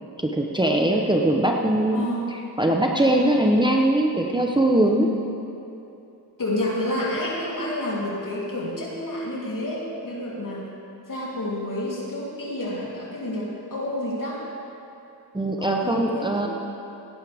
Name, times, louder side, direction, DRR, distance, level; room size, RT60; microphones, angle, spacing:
voice 1, 0.2-2.0 2.6-5.1 15.3-16.5, right 1 dB, 10° right, 0 dB, 0.8 m, -21 dB
voice 2, 1.9-2.3 4.8-5.3 6.4-10.7 11.1-14.4 15.6-16.5, left 1 dB, 50° left, -5 dB, 3.3 m, -29 dB
17.0 x 11.0 x 3.5 m, 2.8 s
cardioid pair, 90°, 41 cm